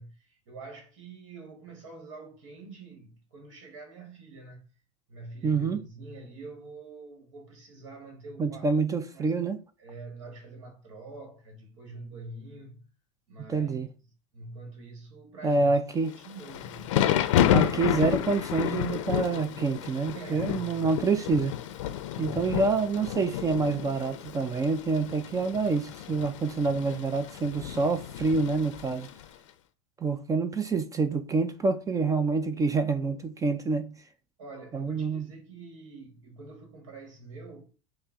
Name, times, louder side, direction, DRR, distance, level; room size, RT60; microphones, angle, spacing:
voice 1, 0.0-4.6 5.1-8.7 9.1-9.3 9.8-12.8 13.3-13.8 14.3-15.7 16.0-16.8 20.1-20.8 22.1-22.6 34.4-37.7, right 3 dB, 70° right, 1.2 m, -45 dB
voice 2, 5.4-5.8 8.4-9.6 13.5-13.9 15.4-16.1 17.5-21.6 22.2-29.1 30.0-34.0 34.7-35.2, right 4 dB, 20° right, 0.4 m, -27 dB
Thunder / Rain, 16.2-29.2, left 11 dB, 75° left, 0.5 m, -30 dB
5.4 x 2.1 x 3.5 m
hypercardioid pair, 90°, 16 cm